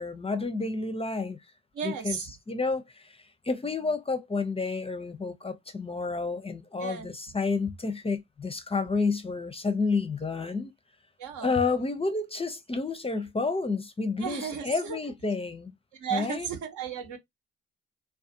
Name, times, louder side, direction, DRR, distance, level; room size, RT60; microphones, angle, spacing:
voice 1, 0.0-1.4 1.8-10.7 11.4-15.7 16.1-16.5, left 4 dB, 20° left, 0.5 m, -30 dB
voice 2, 1.7-2.3 6.8-7.1 11.2-11.5 14.2-15.0 16.0-17.2, right 7 dB, 70° right, 0.9 m, -34 dB
2.4 x 2.3 x 2.6 m
hypercardioid pair, 45°, 31 cm